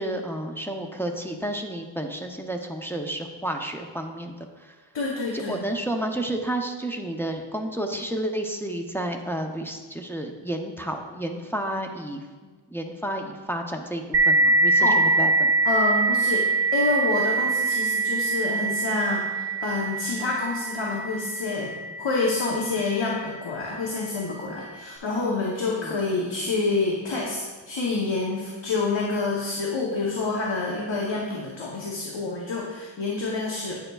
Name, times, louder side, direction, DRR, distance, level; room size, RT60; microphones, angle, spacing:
voice 1, 0.0-4.8 5.3-15.5 25.8-26.0, right 1 dB, 5° left, 3 dB, 0.5 m, -31 dB
voice 2, 4.9-5.7 14.8-15.0 15.6-33.8, left 3 dB, 65° left, -3 dB, 0.9 m, -27 dB
sound 1, 14.1-23.4, right 3 dB, 60° right, 0.7 m, -24 dB
8.7 x 6.7 x 2.3 m, 1.4 s
wide cardioid pair, 60°, 47 cm